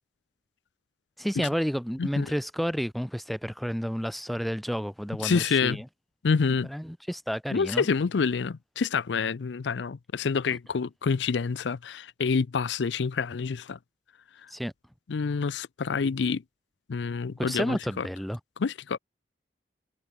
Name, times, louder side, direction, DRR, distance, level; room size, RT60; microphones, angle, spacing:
voice 1, 1.2-5.8 6.7-7.9 14.5-14.7 17.4-18.4, equal, ahead, 1.2 m, -31 dB
voice 2, 5.2-5.8 6.2-6.7 7.5-13.8 15.1-16.4 16.9-18.1 18.6-19.0, left 5 dB, 80° left, 0.5 m, -27 dB
head